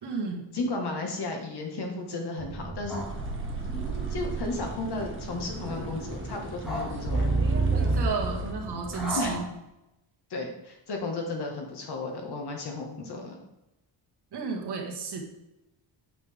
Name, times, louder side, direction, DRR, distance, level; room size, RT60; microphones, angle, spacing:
voice 1, 0.0-0.4 7.7-9.4 14.3-15.2, right 4 dB, 55° right, 1 dB, 1.8 m, -32 dB
voice 2, 0.5-3.0 3.7-7.5 9.2-9.4 10.3-13.4, left 2 dB, 55° left, 2 dB, 1.8 m, -34 dB
sound 1, 2.4-7.9, right 3 dB, 70° right, 1.7 m, -42 dB
sound 2, 2.9-9.4, right 3 dB, ahead, 2.0 m, -30 dB
sound 3, 2.9-8.5, right 2 dB, 25° right, 1.2 m, -47 dB
8.1 x 7.0 x 3.6 m, 0.92 s
cardioid pair, 155°, 47 cm